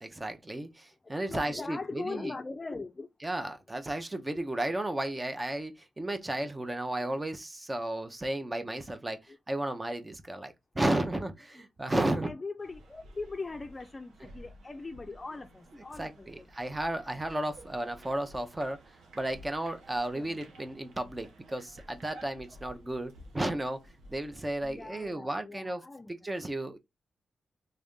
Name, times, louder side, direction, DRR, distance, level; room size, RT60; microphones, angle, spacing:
voice 1, 0.0-2.3 3.2-9.2 9.5-12.3 16.0-18.8 19.1-23.8 24.1-25.8 26.2-26.8, right 1 dB, 20° right, 0.6 m, -33 dB
voice 2, 1.0-3.1 7.0-7.1 9.3-9.4 12.0-16.5 20.1-20.4 24.6-26.1, left 3 dB, 25° left, 0.5 m, -41 dB
sound 1, 12.6-25.1, right 1 dB, 90° right, 1.1 m, -53 dB
3.3 x 2.5 x 3.6 m
cardioid pair, 90°, 0 cm